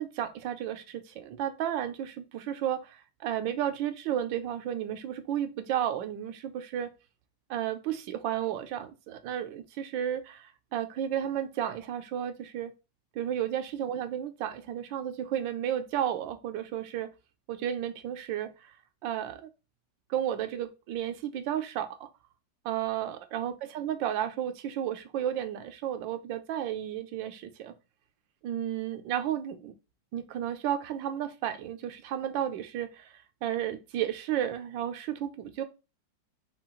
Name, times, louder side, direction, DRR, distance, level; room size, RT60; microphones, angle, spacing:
voice 1, 0.0-6.9 7.5-12.7 13.1-17.1 17.5-18.7 19.0-19.4 20.1-22.1 22.6-27.7 28.4-29.7 30.1-33.1 33.4-35.6, right 10 dB, 90° right, 1.4 m, -33 dB
5.8 x 2.4 x 3.8 m
omnidirectional pair, 2.0 m